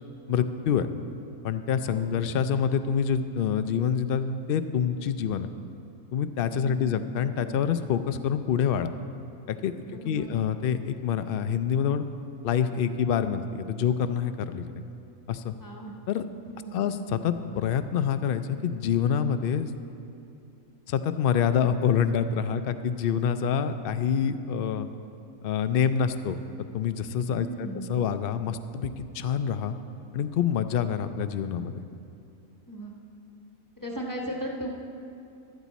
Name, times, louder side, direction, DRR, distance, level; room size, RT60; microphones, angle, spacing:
voice 1, 0.3-0.9 1.4-5.5 6.1-8.9 9.5-9.8 10.0-12.0 12.4-14.8 15.3-15.5 16.1-16.2 16.7-19.7 20.9-24.9 25.4-26.4 26.7-29.8 30.1-31.7, left 7 dB, 75° left, 10 dB, 0.5 m, -26 dB
voice 2, 6.5-7.1 9.9-10.3 15.6-15.9 16.4-16.9 27.3-27.9 32.7-32.9 33.8-34.7, right 1 dB, 15° left, -1 dB, 1.2 m, -36 dB
14.5 x 11.5 x 4.1 m, 2.6 s
omnidirectional pair, 1.5 m